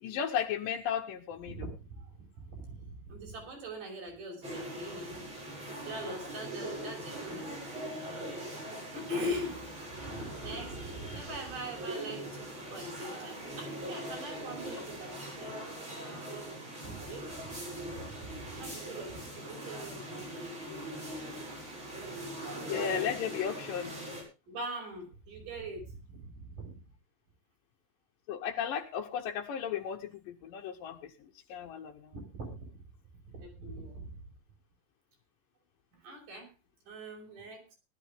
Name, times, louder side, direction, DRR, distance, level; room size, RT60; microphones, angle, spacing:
voice 1, 0.0-1.6 20.7-20.9 22.6-24.0 28.3-32.1, left 8 dB, 85° left, 2 dB, 2.7 m, -35 dB
voice 2, 1.5-5.2 5.8-7.6 8.9-9.7 10.1-15.6 16.8-17.4 17.9-20.5 22.5-23.1 24.5-26.8 32.1-32.8 33.3-34.1 35.9-36.5 36.9-37.8, right 1 dB, 70° right, 1 dB, 7.3 m, -42 dB
sound 1, 4.4-24.2, right 1 dB, 35° right, 7.5 m, -41 dB
18.5 x 12.5 x 3.5 m, 0.29 s
omnidirectional pair, 3.9 m